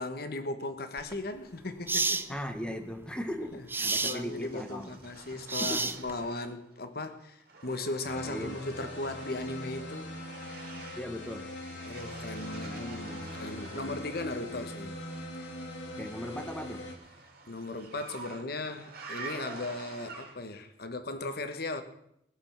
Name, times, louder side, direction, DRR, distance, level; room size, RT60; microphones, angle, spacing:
voice 1, 0.0-2.4 3.5-3.6 4.0-10.1 11.8-15.0 17.5-21.8, left 2 dB, 60° left, 1.3 m, -37 dB
sound 1, 1.0-1.1 1.9-2.3 3.7-4.2 5.5-6.2, right 3 dB, 10° right, 0.6 m, -29 dB
voice 2, 2.3-5.0 5.6-6.0 8.3-8.6 11.0-11.5 12.6-14.1 16.0-16.8, equal, 5° left, 1.3 m, -39 dB
sound 2, 3.7-6.8 7.1-14.4 15.9-20.6, right 4 dB, 60° right, 2.5 m, -48 dB
sound 3, 8.0-17.0, left 1 dB, 85° left, 2.3 m, -41 dB
20.0 x 7.1 x 5.8 m
head